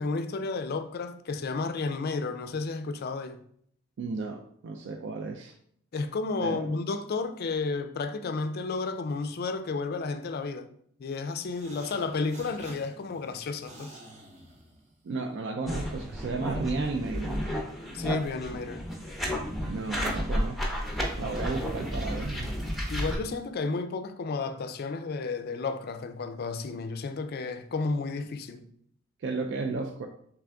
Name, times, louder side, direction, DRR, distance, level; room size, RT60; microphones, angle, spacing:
voice 1, 0.0-3.4 5.9-10.7 11.0-13.9 17.9-18.8 22.9-28.7, left 4 dB, 45° left, 0.4 m, -32 dB
voice 2, 4.0-5.5 6.4-6.7 15.0-17.4 19.7-20.6 21.2-22.5 29.2-30.1, right 3 dB, 60° right, 0.4 m, -33 dB
sound 1, 11.5-15.2, right 1 dB, 35° right, 0.8 m, -49 dB
sound 2, 15.7-23.2, equal, ahead, 0.6 m, -32 dB
3.7 x 3.3 x 3.4 m
head